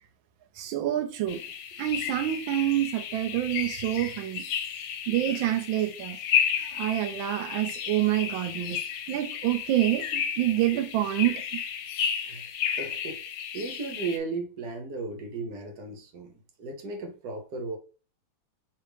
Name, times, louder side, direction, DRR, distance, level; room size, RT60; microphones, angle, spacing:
voice 1, 0.6-1.4 1.8-4.4 5.1-6.2 6.7-8.8 9.1-11.6, right 13 dB, 85° right, 1.4 m, -27 dB
sound 1, 1.3-14.2, left 8 dB, 85° left, 1.4 m, -32 dB
voice 2, 12.7-13.2 13.5-17.8, right 3 dB, 60° right, 1.2 m, -35 dB
3.4 x 3.2 x 4.7 m
omnidirectional pair, 2.1 m